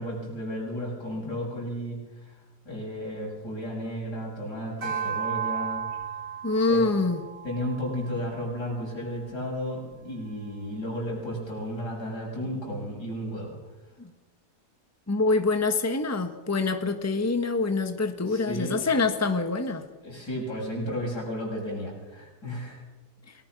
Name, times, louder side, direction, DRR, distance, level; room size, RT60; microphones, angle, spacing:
voice 1, 0.0-2.3 2.6-5.8 6.7-6.8 7.4-13.6 18.3-18.8 20.0-22.8, equal, 85° left, -2 dB, 7.6 m, -33 dB
sound 1, 4.8-9.4, right 7 dB, 85° right, 4.0 m, -35 dB
voice 2, 6.4-7.2 14.0-14.1 15.1-19.8, left 3 dB, 10° left, 7 dB, 1.4 m, -25 dB
29.0 x 19.0 x 6.1 m, 1.1 s
omnidirectional pair, 1.7 m